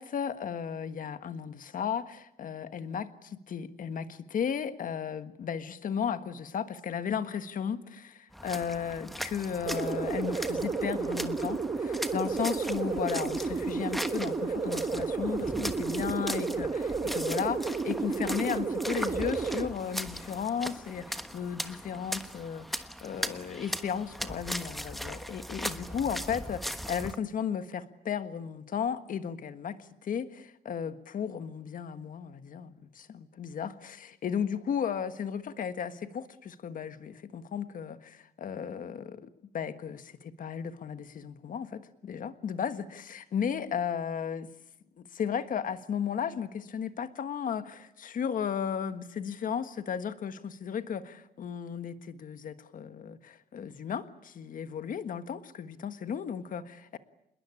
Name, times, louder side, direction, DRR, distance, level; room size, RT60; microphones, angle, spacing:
voice 1, 0.0-39.3 39.5-44.5 45.0-57.0, left 7 dB, 55° left, 11 dB, 1.6 m, -35 dB
sound 1, 8.3-27.2, equal, ahead, 1.3 m, -39 dB
sound 2, 9.7-19.7, right 4 dB, 30° right, 1.6 m, -32 dB
27.5 x 21.0 x 8.7 m, 0.81 s
cardioid pair, 125°, 16 cm